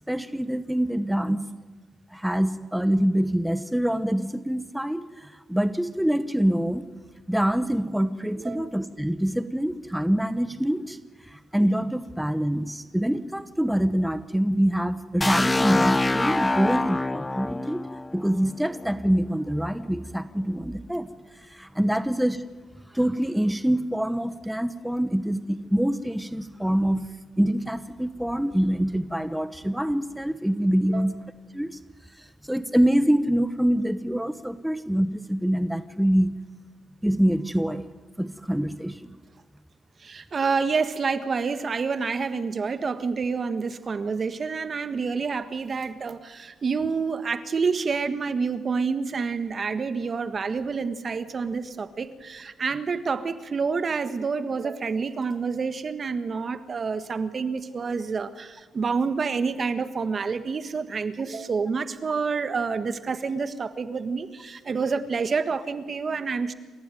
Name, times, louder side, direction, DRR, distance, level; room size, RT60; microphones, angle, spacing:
voice 1, 0.1-1.4 2.1-6.9 7.3-17.9 18.1-22.5 22.9-27.1 27.4-31.2 31.5-31.8 32.1-36.4 37.0-37.9 38.2-39.2, equal, 5° right, 12 dB, 1.0 m, -25 dB
voice 2, 8.4-8.7 30.8-31.1 40.0-66.5, right 5 dB, 45° right, 12 dB, 1.6 m, -28 dB
sound 1, 15.2-19.0, left 2 dB, 15° left, 0.7 m, -25 dB
28.0 x 15.5 x 9.4 m, 1.4 s
cardioid pair, 75°, 0 cm